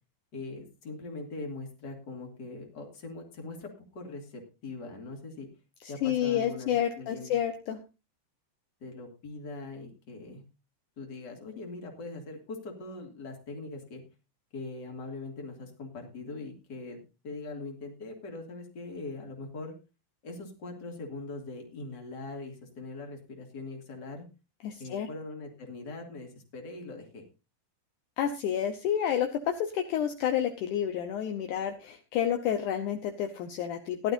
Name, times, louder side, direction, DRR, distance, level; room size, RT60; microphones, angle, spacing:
voice 1, 0.3-5.5 5.9-7.4 8.8-10.4 11.0-14.0 14.5-19.7 20.2-24.2 24.8-27.2, left 3 dB, 35° left, 2 dB, 2.8 m, -41 dB
voice 2, 5.8-7.8 24.6-25.1 28.2-34.1, left 9 dB, 70° left, 5 dB, 2.2 m, -30 dB
17.0 x 11.5 x 2.7 m, 0.29 s
omnidirectional pair, 4.0 m